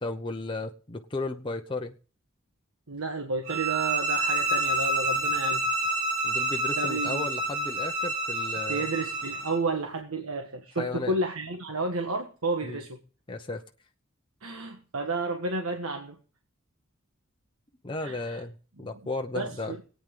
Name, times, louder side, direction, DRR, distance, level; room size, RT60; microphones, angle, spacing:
voice 1, 0.0-1.9 6.2-8.9 10.8-11.1 12.6-12.8 13.3-13.6 17.8-19.8, left 3 dB, 25° left, 0.8 m, -34 dB
voice 2, 2.9-5.7 6.8-7.3 8.7-13.0 14.4-16.2 18.0-18.4 18.8-18.9 19.3-19.8, right 2 dB, 85° right, 1.5 m, -31 dB
sound 1, 3.5-9.6, right 2 dB, 65° right, 4.0 m, -28 dB
21.5 x 9.0 x 3.8 m
head